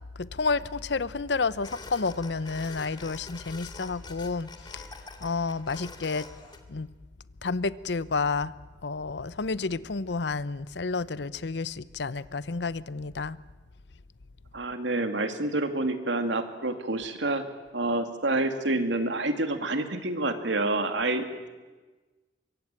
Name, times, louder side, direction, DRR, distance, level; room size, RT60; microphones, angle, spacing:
voice 1, 0.2-4.9 5.2-6.3 6.7-6.9 7.4-8.5 8.8-13.4, left 4 dB, 70° left, 17 dB, 0.7 m, -30 dB
sound 1, 1.6-6.6, left 3 dB, 25° left, 2.3 m, -46 dB
voice 2, 14.5-17.4 17.7-21.3, right 2 dB, 85° right, 7 dB, 2.4 m, -28 dB
24.0 x 23.5 x 9.0 m, 1.3 s
head